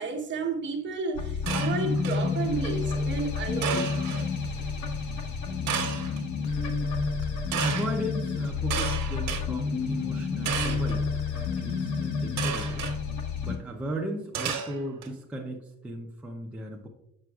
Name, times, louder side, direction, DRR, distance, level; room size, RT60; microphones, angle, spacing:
voice 1, 0.0-3.9, right 4 dB, 40° right, 1.0 m, -32 dB
sound 1, 1.1-13.6, left 5 dB, 75° left, 0.9 m, -30 dB
sound 2, 1.5-2.3 3.6-4.2 5.7-6.2 7.5-7.9 8.7-9.4 10.4-10.9 12.4-12.9 14.3-15.1, right 7 dB, 65° right, 1.2 m, -32 dB
voice 2, 7.6-12.8 13.4-16.9, right 1 dB, 5° right, 0.4 m, -36 dB
7.5 x 5.8 x 2.3 m
cardioid pair, 170°, 30 cm